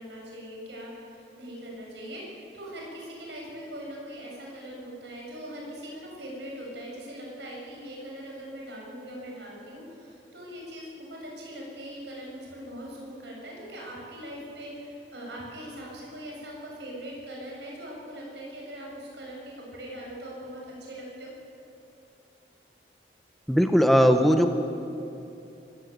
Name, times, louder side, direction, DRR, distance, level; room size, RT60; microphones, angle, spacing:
voice 1, 0.0-21.3, equal, 90° right, -2 dB, 7.4 m, -41 dB
voice 2, 23.5-24.5, equal, ahead, 5 dB, 1.0 m, -19 dB
24.5 x 15.5 x 9.3 m, 2.8 s
head